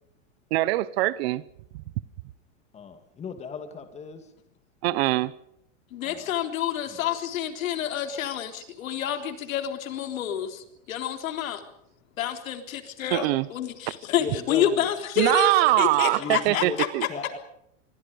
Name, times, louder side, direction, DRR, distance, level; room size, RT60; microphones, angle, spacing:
voice 1, 0.5-1.4 4.8-5.3 13.1-13.5 15.2-17.1, right 18 dB, 50° right, 0.9 m, -23 dB
voice 2, 2.7-4.3 6.0-6.3 6.9-7.2 14.2-14.8 16.1-16.8 17.1-17.4, left 5 dB, 15° left, 2.4 m, -37 dB
voice 3, 5.9-11.6 12.2-16.9, left 9 dB, 85° left, 3.7 m, -28 dB
27.5 x 22.5 x 5.3 m
supercardioid pair, 160°, 40 cm